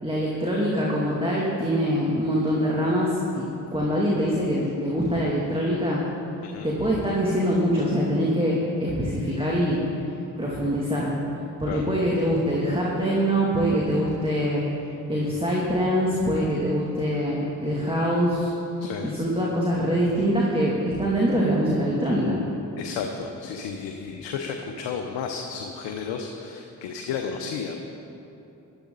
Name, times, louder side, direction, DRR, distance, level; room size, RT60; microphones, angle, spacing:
voice 1, 0.0-6.0 6.6-9.8 10.4-11.1 11.6-14.6 15.1-18.5 19.0-22.4, equal, 15° right, -4 dB, 2.6 m, -24 dB
voice 2, 18.8-19.1 22.8-27.8, left 6 dB, 80° left, 3 dB, 0.9 m, -32 dB
15.0 x 12.5 x 4.0 m, 3.0 s
hypercardioid pair, 40°, 42 cm